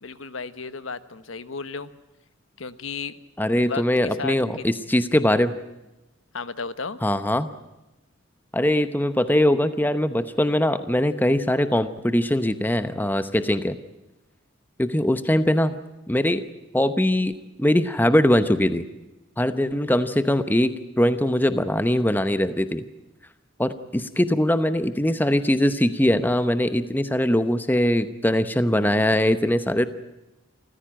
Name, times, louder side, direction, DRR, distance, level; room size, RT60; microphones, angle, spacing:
voice 1, 0.0-1.9 2.6-3.1 3.6-4.3 6.3-7.0, left 4 dB, 75° left, 13 dB, 1.2 m, -33 dB
voice 2, 3.4-5.5 7.0-7.5 8.5-13.8 14.8-15.7 16.1-16.4 16.7-17.3 17.6-18.8 19.4-22.8 23.6-29.9, left 1 dB, 10° left, 12 dB, 0.8 m, -21 dB
27.0 x 15.0 x 8.9 m, 1.0 s
head